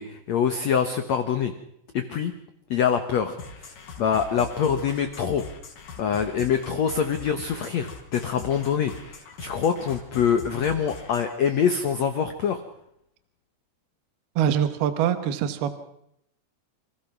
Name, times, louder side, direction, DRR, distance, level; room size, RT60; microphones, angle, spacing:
voice 1, 0.0-1.5 1.9-2.3 2.7-5.4 6.0-12.6, left 7 dB, 85° left, 8 dB, 1.5 m, -25 dB
sound 1, 3.4-11.4, left 5 dB, 55° left, 4.3 m, -42 dB
voice 2, 14.4-15.8, right 9 dB, 70° right, 9 dB, 3.0 m, -24 dB
27.5 x 16.0 x 6.0 m, 0.76 s
omnidirectional pair, 5.0 m